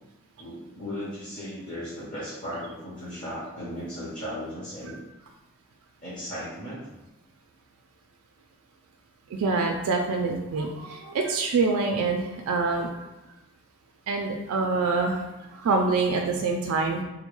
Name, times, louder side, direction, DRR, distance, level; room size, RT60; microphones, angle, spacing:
voice 1, 0.4-5.0 6.0-6.8, equal, 40° left, -8 dB, 0.7 m, -36 dB
voice 2, 9.3-12.9 14.1-15.2 15.5-17.0, right 3 dB, 85° right, 2 dB, 0.3 m, -25 dB
3.5 x 2.2 x 3.0 m, 0.99 s
head